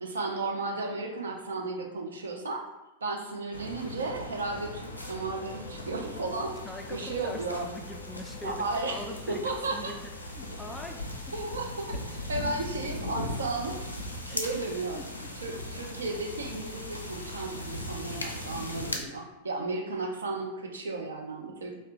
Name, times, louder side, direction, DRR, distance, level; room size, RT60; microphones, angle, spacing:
voice 1, 0.0-2.7 3.0-7.7 8.4-9.9 11.3-13.8 14.3-15.0 15.4-21.8, right 3 dB, 70° right, 1 dB, 0.5 m, -34 dB
sound 1, 3.5-19.0, left 1 dB, 80° left, 0.4 m, -38 dB
voice 2, 6.6-9.4 9.7-9.9 10.2-11.4 14.3-14.7 14.9-15.1 15.4-15.5, left 2 dB, 10° left, 3 dB, 0.3 m, -43 dB
2.8 x 2.2 x 3.6 m, 0.95 s
figure-of-eight pair, 90°, 0 cm